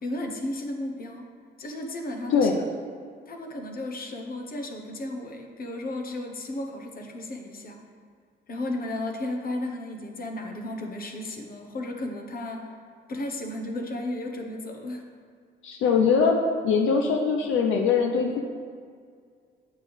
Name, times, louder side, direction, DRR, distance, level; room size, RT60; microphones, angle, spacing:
voice 1, 0.0-1.3 1.6-2.7 3.3-7.8 8.5-12.7 13.1-15.0, left 1 dB, 50° left, 3 dB, 1.1 m, -34 dB
voice 2, 15.6-16.4 16.6-18.4, left 5 dB, 80° left, 2 dB, 0.6 m, -22 dB
8.2 x 6.6 x 3.5 m, 2.1 s
cardioid pair, 90°, 20 cm